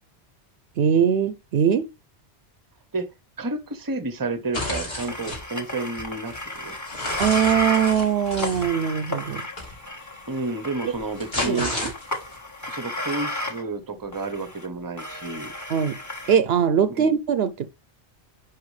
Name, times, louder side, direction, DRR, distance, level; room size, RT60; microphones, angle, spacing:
voice 1, 0.8-1.9 7.2-9.4 10.8-10.9 11.5-11.9 15.7-16.0 16.3-17.7, right 8 dB, 70° right, 0.8 m, -21 dB
voice 2, 3.4-6.8 10.3-11.7 12.7-15.5 17.0-17.1, right 3 dB, 20° right, 0.7 m, -30 dB
sound 1, 4.5-5.4 6.0-8.7 9.6-9.7 10.9-12.3, left 1 dB, 60° left, 3.5 m, -32 dB
sound 2, 5.0-13.6 14.1-14.7 15.0-16.4, left 1 dB, 15° left, 1.3 m, -33 dB
10.5 x 4.3 x 3.2 m
omnidirectional pair, 1.1 m